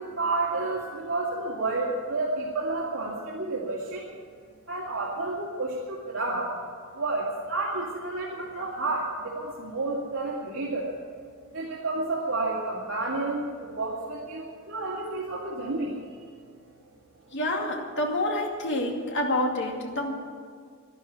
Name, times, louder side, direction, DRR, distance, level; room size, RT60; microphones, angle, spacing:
voice 1, 0.0-4.1 4.7-6.5 6.9-10.9 11.5-16.2, right 2 dB, 75° right, -6 dB, 2.4 m, -30 dB
voice 2, 17.3-20.1, left 1 dB, 60° left, 1 dB, 2.4 m, -28 dB
12.0 x 11.5 x 9.1 m, 2.1 s
head